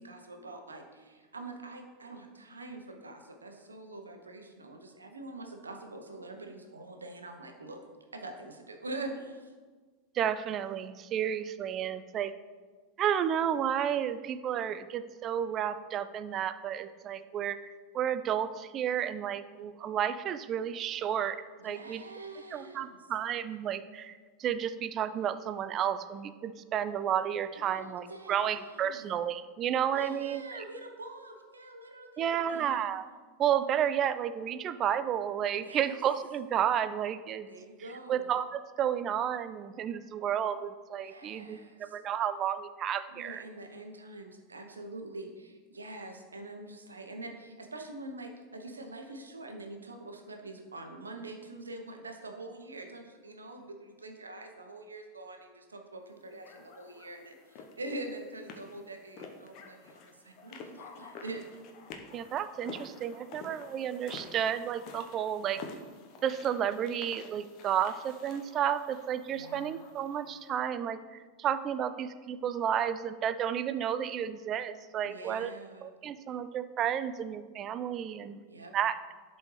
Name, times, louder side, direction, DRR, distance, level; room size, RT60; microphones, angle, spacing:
voice 1, 0.0-7.8 8.1-9.5 21.6-23.0 27.5-29.1 29.9-32.9 35.6-36.0 37.5-38.3 41.0-42.0 43.1-61.4 69.3-69.8 75.0-75.9 78.5-78.7, right 2 dB, 85° right, 4 dB, 0.9 m, -44 dB
voice 2, 10.1-12.3 13.0-22.0 22.5-30.4 32.2-33.1 33.4-37.5 38.1-43.4 62.1-65.6 66.2-75.5 75.8-78.4 78.7-79.0, right 9 dB, 35° right, 13 dB, 0.4 m, -32 dB
sound 1, 56.4-70.5, left 4 dB, 50° left, 0.9 m, -49 dB
11.0 x 4.2 x 3.2 m, 1.4 s
figure-of-eight pair, 90°, 0 cm